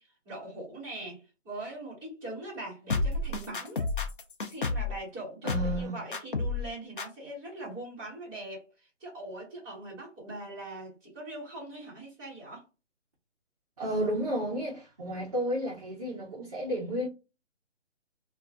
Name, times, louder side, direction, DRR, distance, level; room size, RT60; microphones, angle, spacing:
voice 1, 0.0-3.9 4.5-12.7, right 1 dB, 10° right, 1.3 m, -42 dB
sound 1, 2.9-5.0 5.5-5.8 6.1-6.7 7.0-7.1, left 3 dB, 45° left, 0.4 m, -30 dB
voice 2, 5.4-6.0 13.8-17.1, right 1 dB, 30° right, 0.6 m, -32 dB
2.4 x 2.3 x 3.4 m
hypercardioid pair, 165°, 37 cm